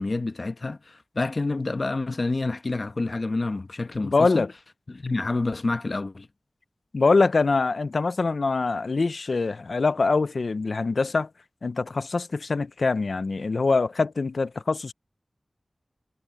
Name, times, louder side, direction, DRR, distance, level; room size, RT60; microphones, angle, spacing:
voice 1, 0.0-4.5 4.9-6.3, left 3 dB, 60° left, 1.1 m, -28 dB
voice 2, 4.1-4.5 6.9-11.3 11.6-14.9, left 3 dB, 85° left, 0.5 m, -24 dB
wide cardioid pair, 55°, 0 cm